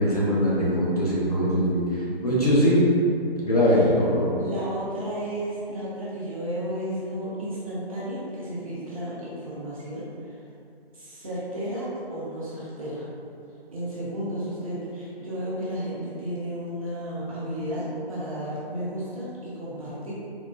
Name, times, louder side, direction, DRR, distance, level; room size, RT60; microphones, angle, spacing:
voice 1, 0.0-1.8 2.2-2.8 3.4-4.3, equal, 40° left, -7 dB, 0.5 m, -21 dB
voice 2, 4.4-10.4 10.9-13.1 13.7-20.1, equal, 35° right, -9 dB, 0.7 m, -33 dB
3.8 x 2.0 x 2.3 m, 2.5 s
figure-of-eight pair, 160°, 31 cm